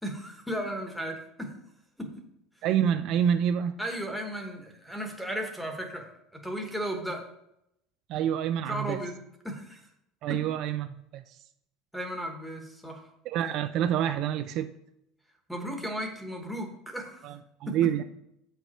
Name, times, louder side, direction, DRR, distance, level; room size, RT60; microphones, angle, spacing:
voice 1, 0.0-1.6 2.0-2.2 3.8-7.3 8.7-9.2 9.4-9.9 10.3-10.4 11.9-13.1 15.5-17.3 17.7-18.0, equal, ahead, 1.2 m, -35 dB
voice 2, 2.6-3.8 8.1-9.0 10.2-11.4 13.3-14.7 17.2-18.0, right 9 dB, 50° right, 0.4 m, -27 dB
7.8 x 5.1 x 4.3 m
cardioid pair, 150°, 0 cm